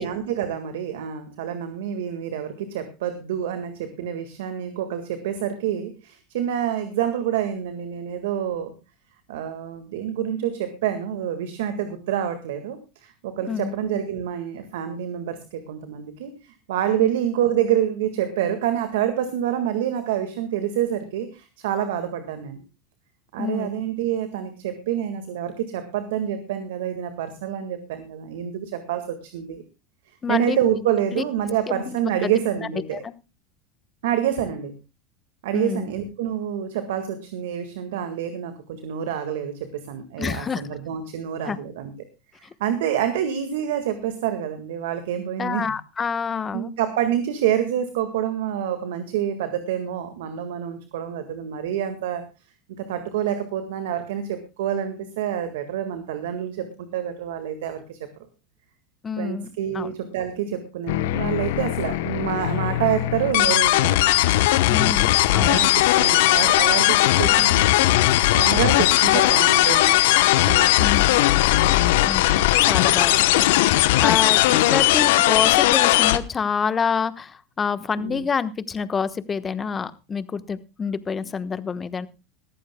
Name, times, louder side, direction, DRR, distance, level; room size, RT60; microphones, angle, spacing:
voice 1, 0.0-8.7 9.3-22.6 23.3-29.6 30.3-33.0 34.0-34.7 35.4-41.9 42.4-45.7 46.5-52.2 52.7-58.0 59.2-64.0 65.4-70.0 70.5-70.8 71.0-71.2 71.8-72.1 78.0-78.3, right 10 dB, 75° right, 8 dB, 1.8 m, -27 dB
voice 2, 23.4-23.7 30.2-30.6 31.1-31.2 31.7-32.3 32.9-33.1 35.5-35.9 40.2-40.6 41.4-41.6 45.4-46.7 59.0-59.5 59.7-59.9 64.7-65.6 70.8-71.2 72.0-72.2 72.6-82.1, left 6 dB, 25° left, 13 dB, 1.2 m, -27 dB
sound 1, 60.9-76.2, left 16 dB, 70° left, 0.9 m, -18 dB
20.0 x 14.5 x 2.3 m, 0.29 s
hypercardioid pair, 100°, 0 cm